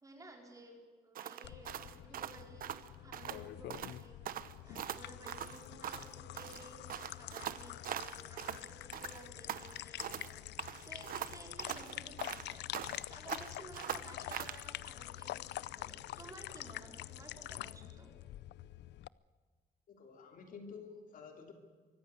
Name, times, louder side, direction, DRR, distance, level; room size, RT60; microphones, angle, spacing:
voice 1, 0.0-2.7 3.0-4.4 4.6-10.4 10.8-12.6 13.1-18.1, right 2 dB, 20° right, 2 dB, 4.1 m, -55 dB
sound 1, 1.1-3.4 3.7-4.0 4.2-6.1 6.4-8.6 8.9-10.3 10.6-13.0 13.3-14.6, right 10 dB, 55° right, 1.0 m, -42 dB
sound 2, 1.4-19.1, left 14 dB, 80° left, 0.5 m, -46 dB
voice 2, 19.9-21.5, left 5 dB, 50° left, 5 dB, 2.8 m, -51 dB
24.0 x 15.0 x 9.4 m, 1.5 s
cardioid pair, 180°, 18 cm